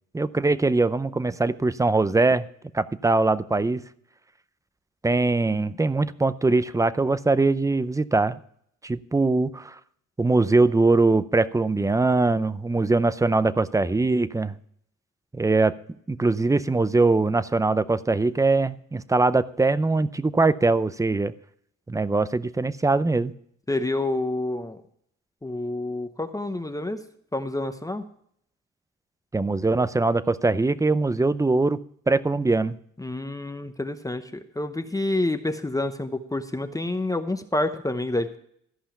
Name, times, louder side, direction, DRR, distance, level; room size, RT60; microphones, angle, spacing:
voice 1, 0.1-2.5 2.7-3.8 5.0-8.4 8.8-9.8 10.2-14.5 15.3-15.8 16.1-21.3 21.9-23.3 29.3-31.8 32.1-32.8, right 3 dB, 10° right, 15 dB, 0.5 m, -22 dB
voice 2, 23.7-24.8 25.4-27.0 27.3-28.0 33.0-38.4, left 2 dB, 10° left, 7 dB, 0.9 m, -28 dB
14.0 x 5.6 x 6.8 m, 0.67 s
cardioid pair, 90°, 30 cm